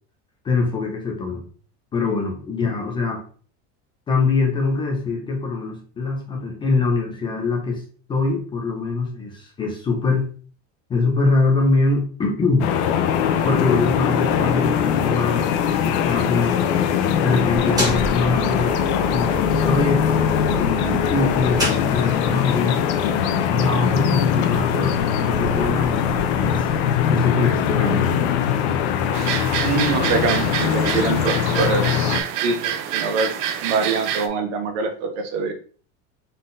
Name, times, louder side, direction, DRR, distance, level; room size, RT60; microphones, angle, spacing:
voice 1, 0.4-1.5 1.9-3.2 4.1-7.8 8.1-10.3 10.9-12.7 13.4-16.6 17.2-18.7 19.1-22.8 23.5-28.1, left 3 dB, 15° left, 1 dB, 0.4 m, -23 dB
sound 1, 12.6-32.2, left 8 dB, 70° left, 0.6 m, -21 dB
sound 2, 17.3-22.4, right 2 dB, 10° right, 1.1 m, -30 dB
sound 3, 29.1-34.3, right 9 dB, 50° right, 0.5 m, -27 dB
voice 2, 29.6-33.3 33.6-35.5, right 4 dB, 75° right, 6 dB, 0.9 m, -24 dB
4.0 x 3.7 x 2.5 m, 0.43 s
cardioid pair, 170°, 34 cm